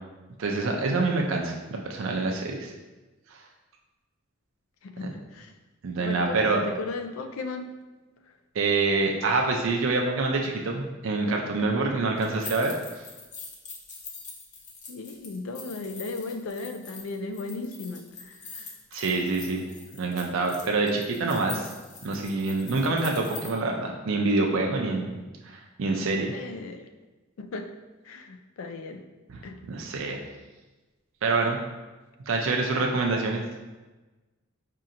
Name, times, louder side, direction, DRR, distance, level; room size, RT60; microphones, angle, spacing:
voice 1, 0.4-2.7 5.0-5.1 5.8-6.6 8.5-12.7 18.9-19.6 20.0-21.7 22.0-25.1 25.5-26.3 29.7-30.2 31.2-31.6 32.3-33.4, right 3 dB, 75° right, 1 dB, 0.4 m, -26 dB
voice 2, 4.8-5.5 6.0-7.7 11.3-11.4 14.9-18.8 26.3-26.9 27.4-27.7 28.0-29.0 29.4-29.6, left 3 dB, 90° left, 7 dB, 0.4 m, -36 dB
sound 1, 12.2-23.5, left 4 dB, 35° left, 0.6 m, -43 dB
4.9 x 2.8 x 2.5 m, 1.2 s
head